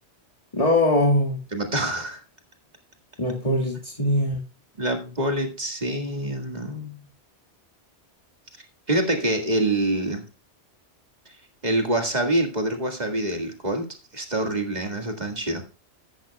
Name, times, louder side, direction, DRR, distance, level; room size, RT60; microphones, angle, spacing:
voice 1, 0.5-1.4 3.2-4.4, left 1 dB, 30° left, 0 dB, 1.9 m, -21 dB
voice 2, 1.5-2.2 4.8-7.0 8.9-10.2 11.3-11.4 11.6-13.9 14.1-15.6, right 1 dB, 40° right, 5 dB, 1.9 m, -26 dB
14.0 x 11.0 x 2.3 m, 0.31 s
omnidirectional pair, 1.2 m